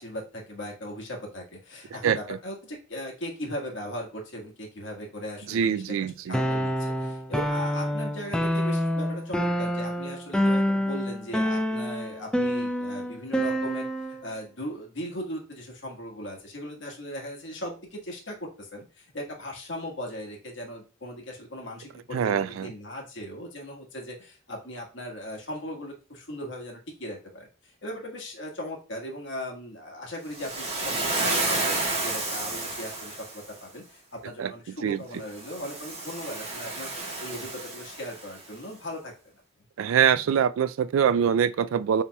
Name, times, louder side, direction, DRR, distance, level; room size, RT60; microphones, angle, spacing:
voice 1, 0.0-36.9 37.2-39.1, left 1 dB, 65° left, 1.5 m, -38 dB
voice 2, 2.0-2.4 5.5-6.4 22.1-22.7 34.4-34.5 34.8-35.0 39.8-42.0, right 8 dB, 90° right, 0.3 m, -24 dB
sound 1, 6.3-14.2, equal, 5° left, 0.3 m, -27 dB
Waves surf, 30.3-33.5 35.3-38.4, right 2 dB, 30° right, 1.2 m, -31 dB
6.9 x 3.0 x 2.2 m
head